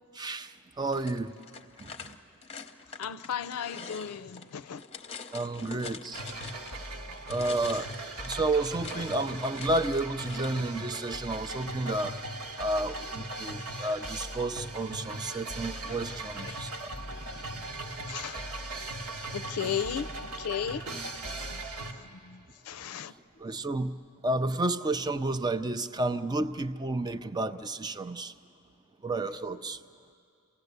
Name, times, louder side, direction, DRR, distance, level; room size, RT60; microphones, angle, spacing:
voice 1, 0.1-1.3 1.8-2.2 5.3-6.2 7.3-7.9 8.2-12.2 12.6-16.9 23.4-23.9 24.2-28.3 29.0-29.8, right 2 dB, 20° right, 0.5 m, -31 dB
sound 1, 0.9-6.8 7.1-10.6, left 5 dB, 30° left, 0.8 m, -45 dB
voice 2, 3.0-4.8 5.6-5.7 15.8-16.0 16.4-16.6 18.1-18.4 19.3-20.1 20.4-20.9 21.5-21.6 22.2-23.1, left 8 dB, 80° left, 0.5 m, -35 dB
sound 2, 6.1-21.9, right 2 dB, 75° right, 1.6 m, -39 dB
28.0 x 17.0 x 8.1 m
head